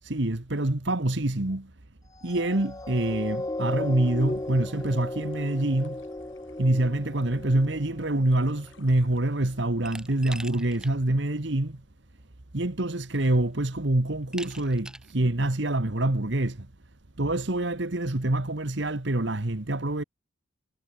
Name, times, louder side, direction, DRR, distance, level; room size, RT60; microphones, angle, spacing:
voice 1, 0.0-1.7 2.2-6.0 6.6-11.8 12.5-16.7 17.2-20.0, right 1 dB, 55° right, 1.5 m, -26 dB
sound 1, 2.2-8.9 9.5-9.6, left 1 dB, 15° left, 0.5 m, -36 dB
sound 2, 4.0-9.7, left 2 dB, 65° left, 4.9 m, -57 dB
Glass, 9.9-11.0 11.4-11.5 12.6-12.7 13.1-13.6 14.3-15.1, right 1 dB, 5° right, 1.0 m, -43 dB
head